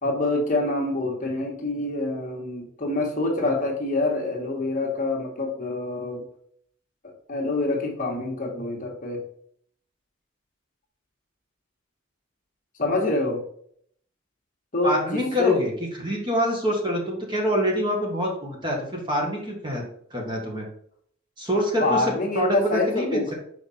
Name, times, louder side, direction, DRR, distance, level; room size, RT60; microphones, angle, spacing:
voice 1, 0.0-6.2 7.3-9.2 12.8-13.4 14.7-15.6 21.8-23.3, left 2 dB, 40° left, -1 dB, 1.4 m, -26 dB
voice 2, 14.8-15.7 16.0-19.8 20.1-20.6 21.4-23.2, equal, 20° right, -1 dB, 1.5 m, -25 dB
5.7 x 4.6 x 4.2 m, 0.65 s
head